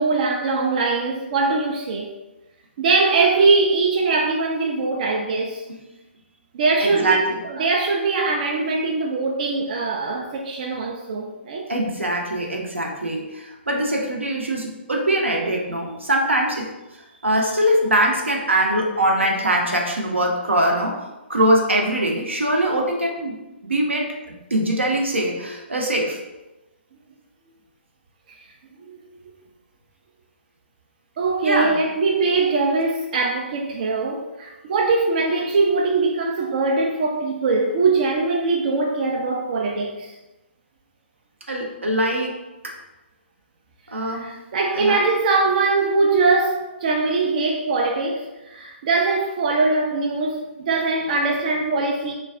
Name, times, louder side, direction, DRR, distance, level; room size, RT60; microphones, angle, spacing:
voice 1, 0.0-2.1 2.8-5.6 6.5-7.2 7.5-11.6 28.3-28.4 28.8-29.1 31.2-40.1 44.1-52.1, right 3 dB, 40° right, 0 dB, 0.3 m, -22 dB
voice 2, 6.8-7.4 11.7-16.7 17.2-23.4 23.6-26.2 31.4-31.8 41.5-42.4 42.6-42.8 43.9-44.3 44.7-45.0, right 1 dB, 80° right, 0 dB, 0.6 m, -22 dB
2.3 x 2.2 x 3.6 m, 1.0 s
figure-of-eight pair, 130°, 6 cm